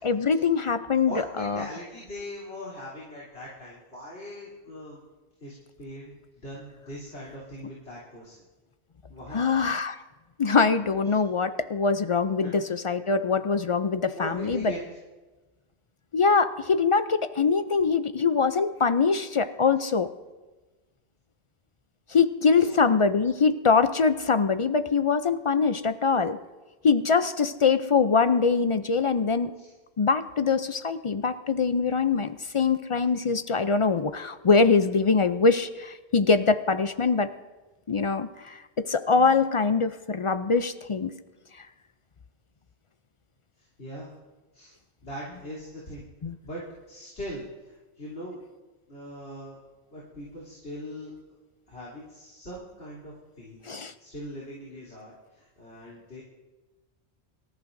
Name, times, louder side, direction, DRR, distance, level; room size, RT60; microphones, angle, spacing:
voice 1, 0.0-1.6 9.3-10.0 10.4-14.7 16.1-20.1 22.1-26.4 26.8-29.5 30.0-37.3 37.9-41.1 46.2-46.3 53.7-53.9, left 5 dB, 50° left, 11 dB, 0.4 m, -23 dB
voice 2, 1.0-5.0 5.4-8.4 9.1-9.5 12.4-12.7 14.1-14.8 19.8-19.9 22.5-22.8 29.6-29.7 43.6-44.1 44.5-44.7 45.0-46.0 46.4-48.4 48.9-49.6 49.9-51.1 51.7-53.6 54.0-56.2, equal, 80° left, -6 dB, 3.6 m, -41 dB
25.0 x 14.0 x 2.6 m, 1.2 s
omnidirectional pair, 1.1 m